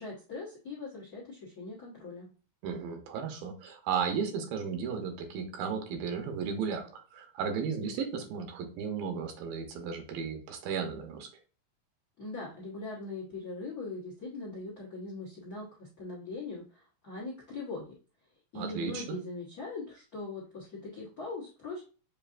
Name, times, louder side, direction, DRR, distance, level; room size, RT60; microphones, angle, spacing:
voice 1, 0.0-2.3 12.2-17.9 18.5-21.8, left 3 dB, 65° left, -5 dB, 0.9 m, -41 dB
voice 2, 2.6-11.3 18.5-19.2, right 6 dB, 80° right, 5 dB, 2.6 m, -34 dB
7.0 x 2.7 x 2.5 m, 0.36 s
omnidirectional pair, 4.0 m